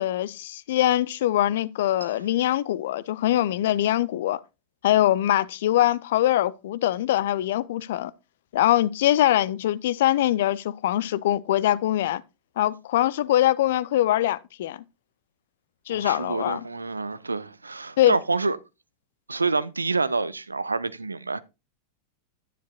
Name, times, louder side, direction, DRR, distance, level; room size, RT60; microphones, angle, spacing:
voice 1, 0.0-4.4 4.8-8.1 8.5-12.2 12.6-14.8 15.9-16.6 18.0-18.2, left 13 dB, 55° left, 0.5 m, -23 dB
voice 2, 15.9-18.6 19.3-21.4, right 3 dB, 80° right, 0.6 m, -27 dB
10.0 x 10.0 x 2.4 m
figure-of-eight pair, 90°, 0 cm